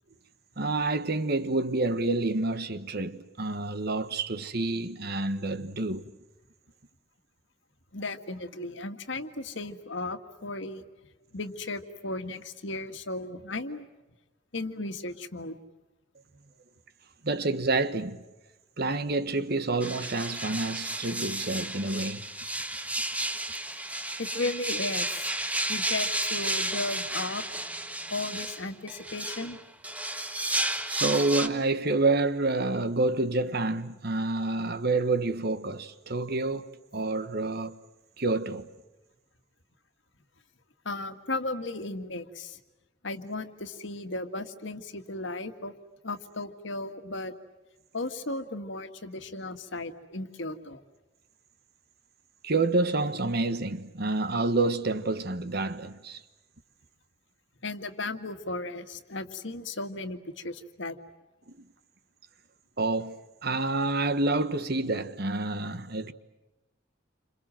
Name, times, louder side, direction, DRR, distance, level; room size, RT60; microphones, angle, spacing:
voice 1, 0.6-6.1 17.2-18.2 18.8-22.3 30.9-37.8 38.2-38.7 52.4-56.2 62.8-66.1, right 2 dB, 55° right, 1.4 m, -28 dB
voice 2, 7.9-10.9 11.3-13.9 14.5-15.6 24.2-25.3 25.7-27.4 28.1-29.6 40.9-42.6 43.0-45.7 46.0-47.3 47.9-50.8 57.6-61.0, left 2 dB, 65° left, 1.9 m, -35 dB
sound 1, 19.8-31.5, right 1 dB, 5° right, 1.2 m, -32 dB
29.0 x 27.0 x 7.6 m
head